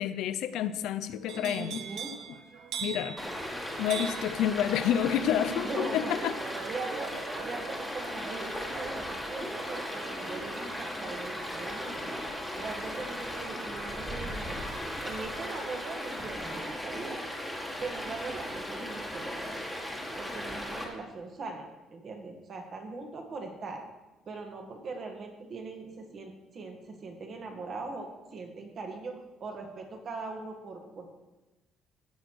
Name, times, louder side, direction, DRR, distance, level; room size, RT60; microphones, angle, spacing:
voice 1, 0.0-1.8 2.8-3.2 3.8-6.4, left 10 dB, 80° left, 12 dB, 0.6 m, -29 dB
voice 2, 1.3-2.1 5.1-6.1 6.6-12.2 12.6-14.7 15.0-17.2 17.8-19.4 20.2-23.8 24.3-31.1, right 3 dB, 35° right, 3 dB, 1.8 m, -40 dB
sound 1, 1.3-13.2 13.6-14.0, right 7 dB, 55° right, 0.8 m, -44 dB
Stream, 3.2-20.8, equal, ahead, 1.7 m, -37 dB
16.5 x 6.4 x 4.7 m, 1.1 s
cardioid pair, 175°, 0 cm